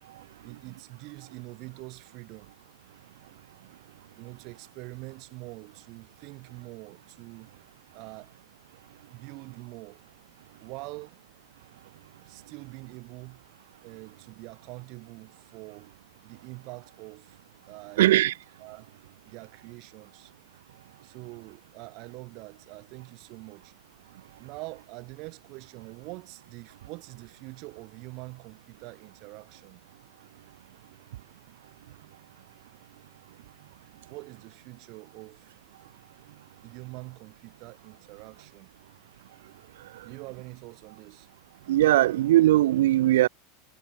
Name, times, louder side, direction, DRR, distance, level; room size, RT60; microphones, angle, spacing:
voice 1, 0.4-2.5 4.2-7.5 7.9-8.3 9.1-10.0 10.6-11.2 12.2-13.4 13.8-15.9 16.2-17.4 17.7-18.1 18.6-18.9 19.3-20.3 21.0-23.7 24.4-29.8 34.1-35.5 36.6-38.7 40.0-41.3, right 26 dB, 50° right, 3.9 m, -44 dB
voice 2, 18.0-18.3 41.7-43.3, right 14 dB, 85° right, 0.7 m, -20 dB
supercardioid pair, 135°, 0 cm